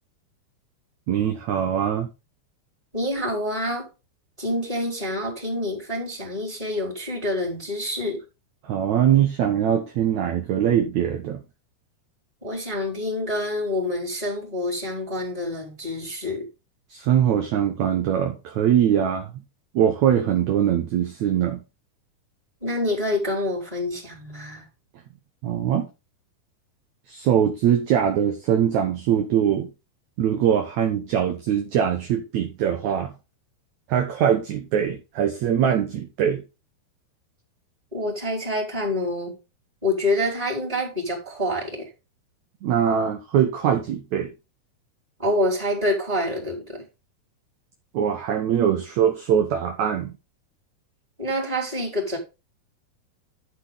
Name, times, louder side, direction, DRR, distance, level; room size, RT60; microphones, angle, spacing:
voice 1, 1.1-2.1 8.6-11.4 16.9-19.3 19.7-21.6 25.4-25.9 27.1-29.7 30.2-33.1 33.9-36.4 42.6-44.3 47.9-50.2, right 9 dB, 65° right, 1.9 m, -22 dB
voice 2, 2.9-3.9 4.4-8.2 12.4-16.5 22.6-24.6 37.9-39.4 39.8-41.9 45.2-46.8 51.2-52.2, left 1 dB, 10° right, 4.1 m, -27 dB
11.5 x 6.1 x 4.0 m
omnidirectional pair, 4.5 m